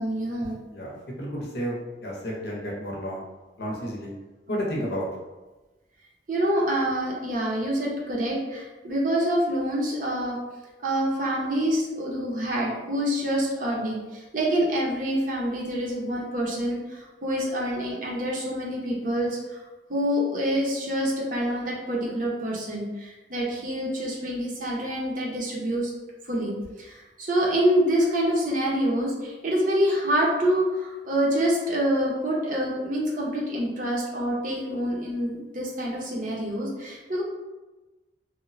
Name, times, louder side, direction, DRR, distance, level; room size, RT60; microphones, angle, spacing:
voice 1, 0.0-0.6 6.3-10.4 10.8-19.6 19.9-25.9 26.3-37.2, equal, 45° right, -3 dB, 0.6 m, -26 dB
voice 2, 0.7-3.2 3.6-4.1 4.5-5.1, equal, 60° left, -3 dB, 0.7 m, -31 dB
3.0 x 2.0 x 2.5 m, 1.1 s
head